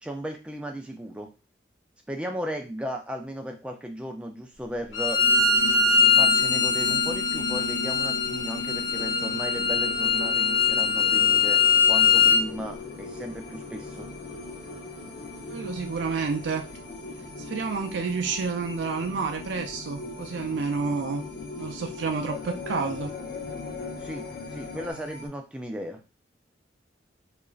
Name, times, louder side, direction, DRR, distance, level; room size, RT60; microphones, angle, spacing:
voice 1, 0.0-1.3 2.1-5.2 6.2-14.1 24.0-24.3 24.5-26.0, equal, 5° right, 2 dB, 0.3 m, -36 dB
Bowed string instrument, 4.9-12.4, left 5 dB, 85° left, 0.8 m, -22 dB
sound 1, 5.2-24.9, left 3 dB, 70° left, 0.4 m, -38 dB
sound 2, 9.2-25.3, left 2 dB, 50° left, 0.8 m, -46 dB
voice 2, 15.5-16.7 17.5-21.2 21.6-23.1, right 4 dB, 80° right, 5 dB, 0.4 m, -29 dB
2.9 x 2.4 x 2.3 m, 0.30 s
head